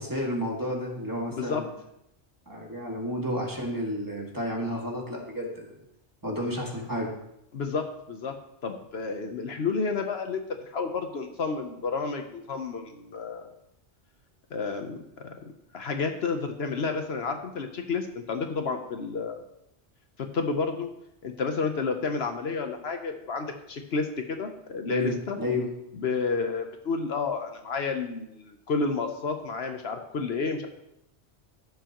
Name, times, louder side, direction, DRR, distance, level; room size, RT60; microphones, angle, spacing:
voice 1, 0.0-1.7 2.5-5.7 6.2-7.1 24.9-25.7, left 1 dB, 15° right, -2 dB, 2.0 m, -31 dB
voice 2, 1.3-1.7 7.5-8.3 8.6-13.5 14.5-15.0 15.2-15.4 15.7-19.4 20.2-20.9 21.2-25.4 25.9-30.7, left 4 dB, 65° left, 5 dB, 1.1 m, -30 dB
15.5 x 7.0 x 3.0 m, 0.81 s
omnidirectional pair, 1.2 m